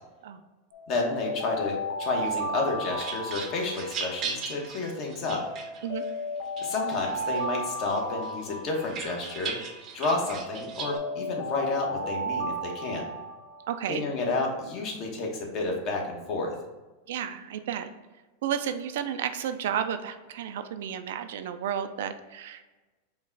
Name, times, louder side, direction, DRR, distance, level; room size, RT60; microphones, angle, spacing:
Alarm, 0.7-4.9 5.4-9.9 10.4-14.2, equal, 70° left, 0.6 m, -35 dB
voice 1, 0.9-5.4 6.6-9.6 9.9-13.1 13.9-16.5, left 3 dB, 40° left, 0 dB, 1.2 m, -30 dB
sound 1, 2.5-6.1 6.6-7.5 7.9-11.0, right 6 dB, 35° right, 0.6 m, -38 dB
voice 2, 13.7-14.0 17.1-17.9 18.4-22.6, right 9 dB, 75° right, 9 dB, 0.4 m, -32 dB
5.2 x 2.3 x 3.9 m, 1.2 s
supercardioid pair, 140°, 0 cm